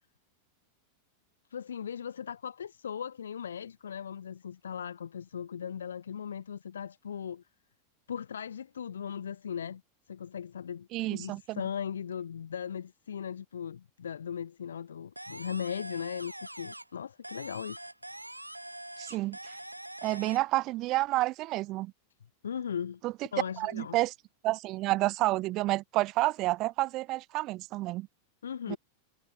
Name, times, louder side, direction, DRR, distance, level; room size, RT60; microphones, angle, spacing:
voice 1, 1.5-7.4 8.1-9.8 10.1-17.9 22.4-23.0 23.3-24.0 28.4-28.8, left 8 dB, 70° left, 1.9 m, -38 dB
voice 2, 10.9-11.6 19.0-19.6 20.0-21.9 23.0-23.1 23.6-24.1 24.4-28.1 28.7-28.8, right 18 dB, 40° right, 0.3 m, -30 dB
sound 1, 15.2-17.0 17.2-20.4, right 1 dB, 85° right, 4.4 m, -44 dB
figure-of-eight pair, 90°, 0 cm